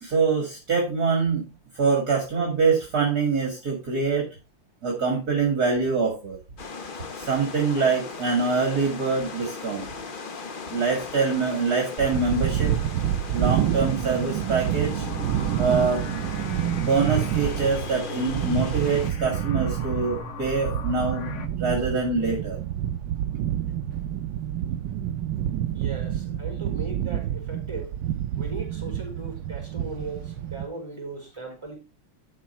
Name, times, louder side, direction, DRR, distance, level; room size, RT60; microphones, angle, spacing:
voice 1, 0.0-1.5 1.7-4.3 4.8-6.4 7.1-9.9 10.7-12.7 13.3-15.1 15.6-16.0 16.8-21.3 21.6-22.6, right 4 dB, 45° right, 2.6 m, -24 dB
sound 1, 6.6-19.1, left 4 dB, 65° left, 0.5 m, -38 dB
sound 2, 12.0-30.7, right 11 dB, 70° right, 1.2 m, -28 dB
sound 3, 14.9-21.5, left 4 dB, 50° left, 1.0 m, -38 dB
voice 2, 25.7-28.0 28.3-31.8, right 3 dB, 10° right, 4.3 m, -38 dB
11.5 x 5.2 x 4.4 m
omnidirectional pair, 2.4 m